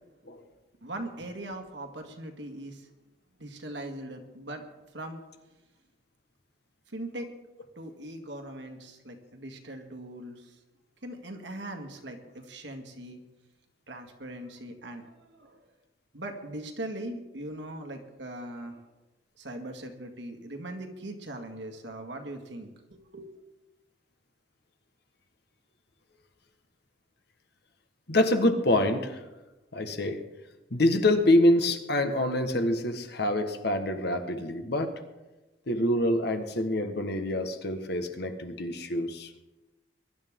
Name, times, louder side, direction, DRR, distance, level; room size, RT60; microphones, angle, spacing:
voice 1, 0.8-2.9 3.4-4.6 4.9-5.2 6.9-7.3 7.8-10.6 11.0-13.2 13.9-15.6 16.1-18.8 19.4-23.3, right 1 dB, 70° right, 4 dB, 1.9 m, -40 dB
voice 2, 28.1-29.2 29.7-30.2 30.7-34.9 35.7-39.3, left 1 dB, 60° left, 7 dB, 1.4 m, -26 dB
22.0 x 11.5 x 3.7 m, 1.1 s
head